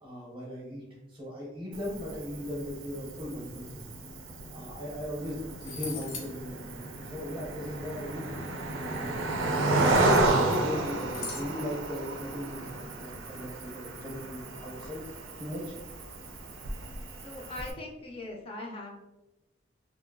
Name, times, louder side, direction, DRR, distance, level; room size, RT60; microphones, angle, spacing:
voice 1, 0.0-3.8 4.5-8.3 8.8-15.0 15.4-15.8, left 1 dB, 20° right, -6 dB, 0.7 m, -38 dB
Cricket, 1.7-17.7, right 2 dB, 90° right, 0.4 m, -32 dB
sound 1, 5.2-5.3 5.6-6.3 9.8-10.7 11.1-11.5, left 4 dB, 80° left, 0.6 m, -41 dB
voice 2, 17.2-19.0, left 2 dB, 30° left, 0 dB, 0.5 m, -40 dB
2.8 x 2.6 x 2.5 m, 1.0 s
head